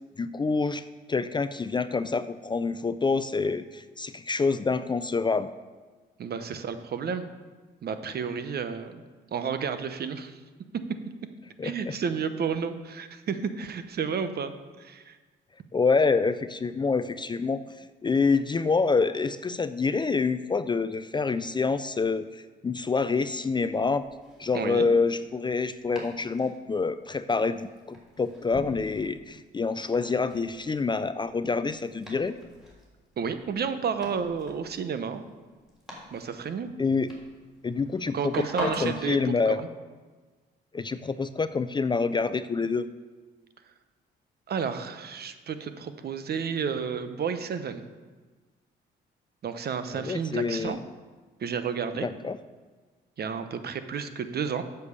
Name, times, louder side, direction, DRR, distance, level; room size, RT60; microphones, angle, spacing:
voice 1, 0.2-5.5 11.6-11.9 15.7-17.6 18.0-24.1 24.4-32.4 36.8-37.1 37.6-38.3 38.6-39.6 40.7-42.9 49.9-50.8 52.0-52.4, left 4 dB, 25° left, 13 dB, 0.4 m, -27 dB
voice 2, 6.2-7.2 7.8-9.0 9.3-10.4 11.6-15.2 24.5-24.9 33.2-35.2 36.1-36.7 38.1-39.7 44.5-47.8 49.4-50.8 51.4-52.1 53.2-54.6, right 6 dB, 55° right, 10 dB, 0.9 m, -31 dB
Domestic sounds home sounds, 23.5-39.1, equal, ahead, 3.4 m, -44 dB
8.0 x 6.9 x 6.9 m, 1.4 s
cardioid pair, 90°, 20 cm